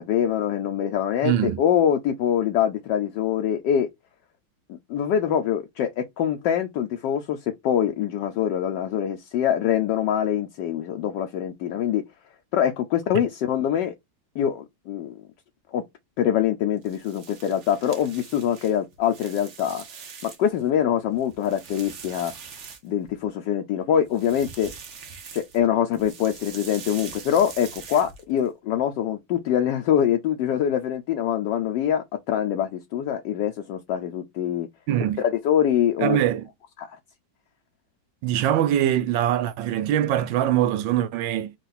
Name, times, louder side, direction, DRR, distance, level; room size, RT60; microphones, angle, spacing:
voice 1, 0.0-3.9 4.7-7.4 7.6-12.0 12.5-13.9 14.4-15.2 15.7-15.8 16.2-19.8 20.2-22.3 22.8-24.7 25.3-34.7 35.2-36.2 36.8-37.0, left 9 dB, 75° left, 1.2 m, -24 dB
voice 2, 1.2-1.6 34.9-35.2 36.0-36.5 38.2-41.5, right 11 dB, 85° right, 1.3 m, -23 dB
sound 1, 16.8-20.6 21.0-23.3 24.0-25.7 25.9-28.5, right 6 dB, 50° right, 1.0 m, -43 dB
4.8 x 2.3 x 4.1 m
omnidirectional pair, 2.0 m